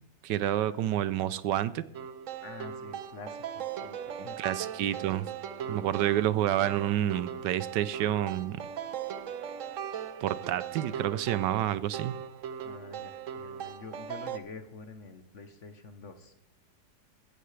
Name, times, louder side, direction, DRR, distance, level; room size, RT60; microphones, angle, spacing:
voice 1, 0.2-1.8 4.2-5.3 5.7-8.6 10.2-12.1, right 12 dB, 75° right, 16 dB, 1.2 m, -29 dB
sound 1, 1.9-14.4, right 8 dB, 60° right, 0.8 m, -39 dB
voice 2, 2.4-4.6 4.8-5.0 5.6-5.7 12.6-16.3, left 4 dB, 50° left, 8 dB, 1.2 m, -47 dB
16.5 x 13.5 x 3.3 m, 0.85 s
omnidirectional pair, 1.9 m